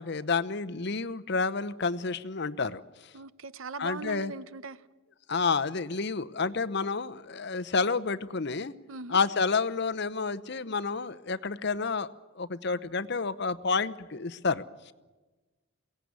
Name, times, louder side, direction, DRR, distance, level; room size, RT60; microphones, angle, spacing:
voice 1, 0.0-2.8 3.8-4.3 5.3-8.7 9.1-12.1 12.4-14.6, left 4 dB, 55° left, 0.8 m, -29 dB
voice 2, 3.1-4.8 8.9-9.2, right 4 dB, 80° right, 0.8 m, -40 dB
22.5 x 17.5 x 9.6 m
head